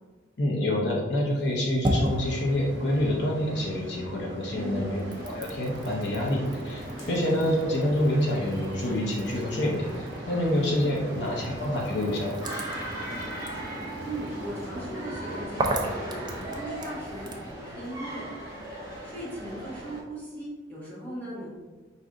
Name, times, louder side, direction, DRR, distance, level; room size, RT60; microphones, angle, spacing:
voice 1, 0.4-12.3, left 1 dB, 60° left, -3 dB, 0.7 m, -27 dB
sound 1, 1.3-3.9 4.3-17.5, right 1 dB, 20° right, 0.4 m, -37 dB
sound 2, 1.9-15.5, right 1 dB, 70° right, 0.9 m, -41 dB
sound 3, 4.5-20.0, right 1 dB, 75° left, 1.4 m, -40 dB
voice 2, 4.5-5.0 7.0-7.4 10.8-11.5 14.0-16.2 16.5-18.3 19.0-21.5, right 1 dB, 10° left, -8 dB, 1.4 m, -38 dB
4.9 x 2.7 x 3.7 m, 1.3 s
head